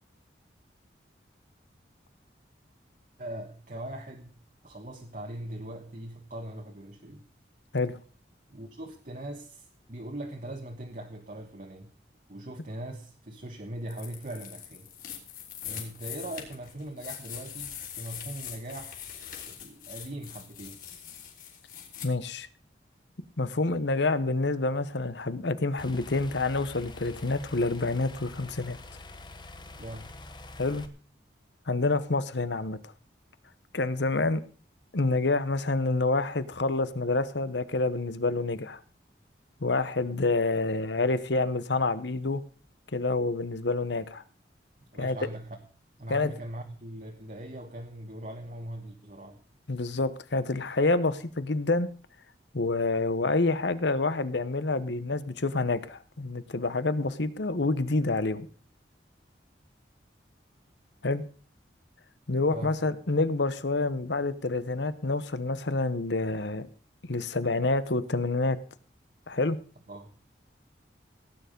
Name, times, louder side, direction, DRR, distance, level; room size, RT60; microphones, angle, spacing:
voice 1, 3.2-4.4 4.6-7.3 8.5-11.9 12.3-14.9 15.6-19.1 19.4-20.8 29.8-30.3 44.9-45.6 46.0-49.4 62.5-62.9 69.9-70.2, right 1 dB, 45° right, 3 dB, 1.3 m, -40 dB
sound 1, 13.9-22.1, left 9 dB, 50° left, 3.3 m, -42 dB
voice 2, 22.0-22.5 23.4-28.8 30.6-30.9 31.7-32.8 33.7-34.4 34.9-38.8 39.6-42.4 42.9-44.2 45.0-45.2 46.1-46.3 49.7-51.9 52.5-58.5 61.0-61.2 62.3-66.7 67.0-68.6 69.3-69.6, left 3 dB, 75° left, 14 dB, 1.1 m, -27 dB
sound 2, 25.8-30.9, left 2 dB, 25° left, 1.1 m, -46 dB
17.0 x 9.4 x 5.3 m, 0.40 s
head